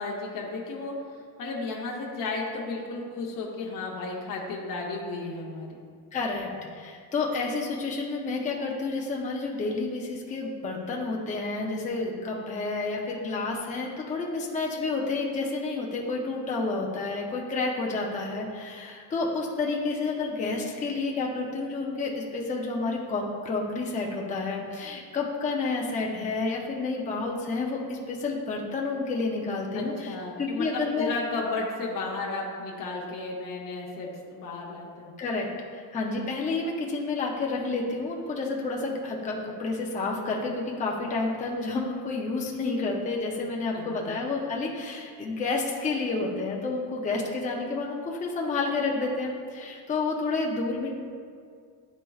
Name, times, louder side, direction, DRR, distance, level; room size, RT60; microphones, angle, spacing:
voice 1, 0.0-5.8 29.7-35.1 43.7-44.1, left 3 dB, 50° left, -3 dB, 0.8 m, -34 dB
voice 2, 6.1-31.1 35.2-35.5 35.7-50.9, left 3 dB, 20° left, -2 dB, 0.5 m, -30 dB
10.0 x 4.3 x 2.3 m, 2.1 s
cardioid pair, 175°, 42 cm